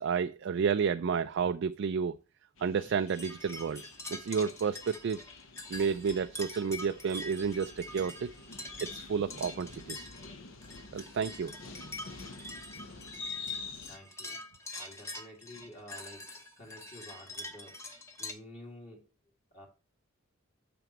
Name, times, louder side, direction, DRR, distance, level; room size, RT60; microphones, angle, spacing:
voice 1, 0.0-2.2 2.6-3.8 4.1-5.2 5.7-8.3 8.8-10.1 10.9-11.5, right 6 dB, 60° right, 0.3 m, -31 dB
sound 1, 2.6-14.0, left 4 dB, 65° left, 0.9 m, -47 dB
sound 2, 3.1-18.3, left 1 dB, 15° left, 0.9 m, -45 dB
voice 2, 13.8-14.4 14.7-17.8 18.2-19.1 19.5-19.7, left 1 dB, 35° left, 2.2 m, -50 dB
9.1 x 6.1 x 3.0 m
head